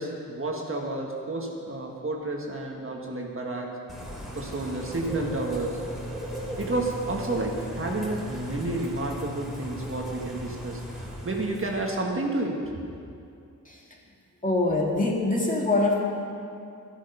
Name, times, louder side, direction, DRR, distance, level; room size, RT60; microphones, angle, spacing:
voice 1, 0.0-3.8 4.3-5.8 6.6-12.8, right 2 dB, 40° right, 0 dB, 1.5 m, -30 dB
Bird / Rain, 3.9-12.0, equal, ahead, 3.4 m, -37 dB
voice 2, 14.4-16.0, left 2 dB, 25° left, -2 dB, 2.2 m, -24 dB
12.5 x 11.0 x 5.4 m, 2.5 s
wide cardioid pair, 90°, 34 cm